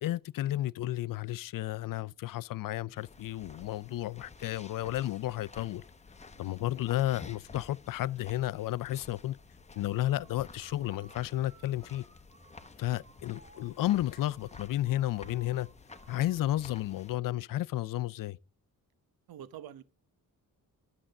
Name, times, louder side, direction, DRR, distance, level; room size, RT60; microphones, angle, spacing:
voice 1, 0.0-5.8 6.4-9.4 9.8-12.0 12.8-15.7 16.1-18.4, left 14 dB, 65° left, 0.5 m, -32 dB
sound 1, 2.9-17.1, left 4 dB, 20° left, 0.8 m, -52 dB
sound 2, 9.7-16.9, right 5 dB, 30° right, 1.6 m, -60 dB
voice 2, 19.3-19.8, right 10 dB, 85° right, 0.9 m, -46 dB
12.5 x 7.3 x 6.5 m
wide cardioid pair, 155°, 35 cm